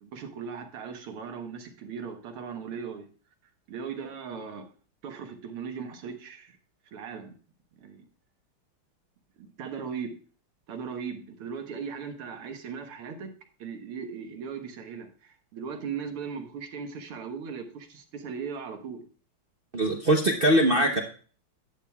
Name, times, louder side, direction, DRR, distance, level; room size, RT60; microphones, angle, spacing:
voice 1, 0.0-3.1 3.7-4.6 5.0-6.6 6.9-7.3 7.8-8.0 9.4-10.1 10.7-13.3 13.6-19.0 20.7-20.9, right 6 dB, 85° right, 5 dB, 2.2 m, -38 dB
voice 2, 19.7-21.0, right 1 dB, 60° right, 2 dB, 0.5 m, -22 dB
11.5 x 8.8 x 2.3 m, 0.40 s
omnidirectional pair, 2.4 m